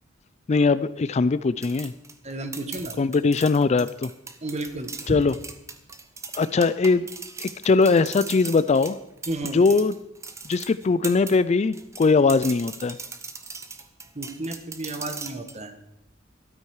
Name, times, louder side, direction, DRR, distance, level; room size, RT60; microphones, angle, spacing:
voice 1, 0.5-1.9 3.0-4.1 5.1-5.4 6.3-7.1 7.4-9.0 9.5-9.9 10.5-13.0, left 4 dB, 35° left, 16 dB, 0.4 m, -21 dB
sound 1, 1.6-11.4 11.7-15.6, right 4 dB, 15° right, 0.9 m, -39 dB
voice 2, 2.2-3.0 4.4-5.1 9.3-9.6 14.1-15.8, right 2 dB, 35° right, 9 dB, 1.2 m, -32 dB
13.0 x 12.5 x 4.7 m, 0.81 s
head